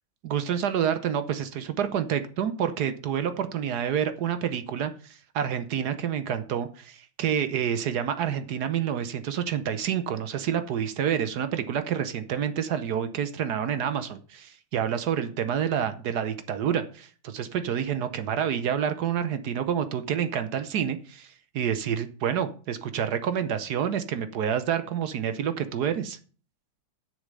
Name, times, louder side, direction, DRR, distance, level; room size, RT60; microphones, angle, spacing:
voice 1, 0.2-26.2, right 8 dB, 65° right, 11 dB, 1.1 m, -28 dB
7.3 x 6.6 x 6.7 m, 0.40 s
omnidirectional pair, 2.2 m